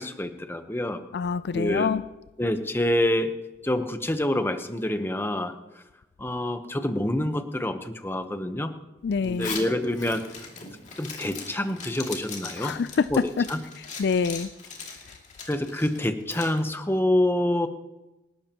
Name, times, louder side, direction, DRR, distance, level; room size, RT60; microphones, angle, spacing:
voice 1, 0.0-1.0 1.5-1.9 2.4-3.3 3.6-5.8 6.2-8.7 9.2-10.5 11.0-12.8 13.1-13.6 15.5-17.7, left 1 dB, 15° left, 0.9 m, -27 dB
voice 2, 1.1-2.0 9.0-9.6 12.6-13.1 13.4-13.5 14.0-14.5, left 5 dB, 65° left, 0.4 m, -25 dB
Zipper (clothing), 9.2-16.6, left 5 dB, 45° left, 2.4 m, -39 dB
28.0 x 12.0 x 2.9 m
head